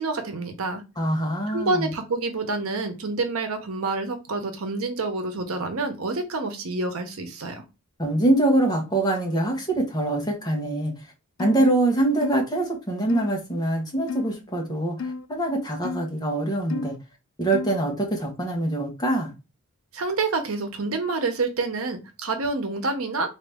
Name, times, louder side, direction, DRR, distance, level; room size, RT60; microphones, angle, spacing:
voice 1, 0.0-0.8 1.5-7.6 19.9-23.3, right 3 dB, 80° right, 0.8 m, -28 dB
voice 2, 1.0-1.9 8.0-10.9 11.4-17.0 17.4-19.3, right 1 dB, 20° left, 1.2 m, -24 dB
sound 1, 11.4-11.7 12.2-12.5 13.1-13.3 14.1-14.4 15.0-15.3 15.8-16.1 16.7-17.0 17.5-17.8, left 4 dB, 65° left, 0.3 m, -32 dB
4.0 x 2.8 x 3.5 m
head